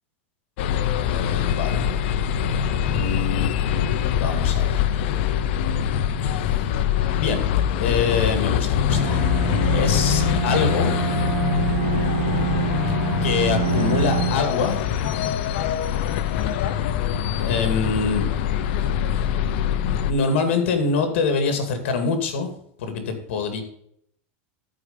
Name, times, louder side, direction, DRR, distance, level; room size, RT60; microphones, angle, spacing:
sound 1, 0.6-20.1, left 9 dB, 60° left, 0.7 m, -23 dB
voice 1, 1.0-1.8 2.9-4.8 7.2-7.4 7.8-9.2 9.7-10.9 13.2-14.8 17.4-18.3 20.1-22.5 22.8-23.6, left 4 dB, 80° left, 6 dB, 2.2 m, -25 dB
Bowed string instrument, 8.9-14.6, right 8 dB, 75° right, 2.3 m, -26 dB
13.0 x 4.9 x 5.2 m, 0.70 s
supercardioid pair, 165°, 7 cm